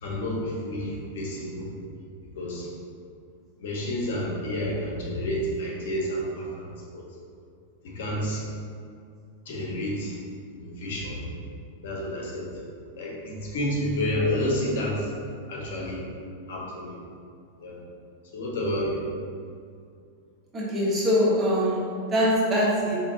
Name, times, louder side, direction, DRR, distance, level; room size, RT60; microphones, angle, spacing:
voice 1, 0.0-1.7 2.4-2.7 3.6-7.0 7.8-8.4 9.4-10.2 10.5-11.2 11.8-12.5 12.9-15.1 15.5-16.0 16.5-17.0 17.6-17.8 18.3-19.0, left 1 dB, 75° left, -3 dB, 1.0 m, -30 dB
voice 2, 20.5-21.8 22.1-23.0, equal, 20° right, -6 dB, 1.0 m, -23 dB
4.4 x 3.0 x 2.6 m, 2.3 s
supercardioid pair, 135°, 0 cm